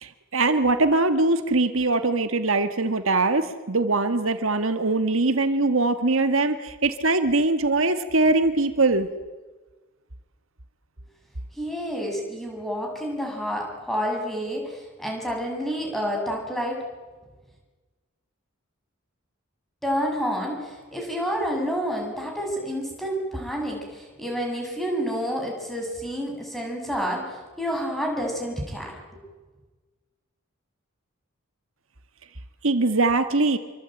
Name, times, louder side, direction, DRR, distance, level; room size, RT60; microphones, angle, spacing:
voice 1, 0.0-9.1 32.6-33.6, right 2 dB, 70° right, 9 dB, 1.6 m, -22 dB
voice 2, 11.6-16.8 19.8-29.2, equal, ahead, 0 dB, 6.9 m, -29 dB
27.0 x 24.5 x 9.1 m, 1.3 s
head